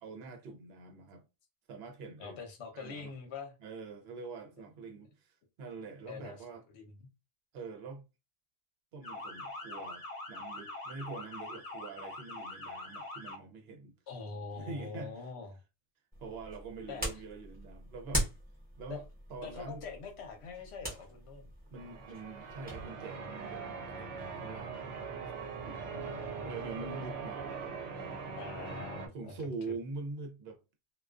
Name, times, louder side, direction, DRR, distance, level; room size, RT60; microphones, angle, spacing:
voice 1, 0.0-1.2 1.7-2.4 2.7-3.1 3.6-6.6 7.5-8.0 8.9-13.9 14.5-15.3 16.2-18.3 18.8-19.0 19.3-19.8 21.7-24.8 25.7-25.8 26.4-27.5 29.0-30.6, right 4 dB, 65° right, 0.9 m, -44 dB
voice 2, 2.2-3.5 6.0-6.4 6.7-7.1 14.1-15.6 16.9-17.1 18.9-19.0 19.4-21.5 25.9-26.5 28.3-29.4 29.7-29.8, left 5 dB, 65° left, 1.0 m, -44 dB
Motor vehicle (road) / Siren, 9.0-13.4, left 2 dB, 35° left, 0.8 m, -43 dB
sound 1, 16.1-22.9, equal, 10° right, 0.9 m, -41 dB
Church bell, 21.8-29.1, right 5 dB, 85° right, 0.9 m, -41 dB
2.4 x 2.3 x 2.3 m
omnidirectional pair, 1.2 m